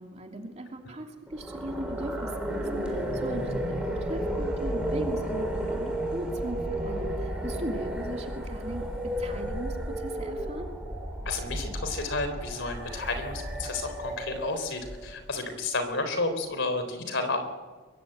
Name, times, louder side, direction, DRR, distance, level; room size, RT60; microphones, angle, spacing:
voice 1, 0.0-10.7, right 1 dB, 35° right, 2 dB, 2.8 m, -38 dB
sound 1, 1.3-15.4, right 1 dB, 5° right, 3.7 m, -33 dB
voice 2, 11.3-17.4, left 3 dB, 60° left, 8 dB, 3.9 m, -31 dB
22.5 x 22.5 x 8.1 m, 1.4 s
head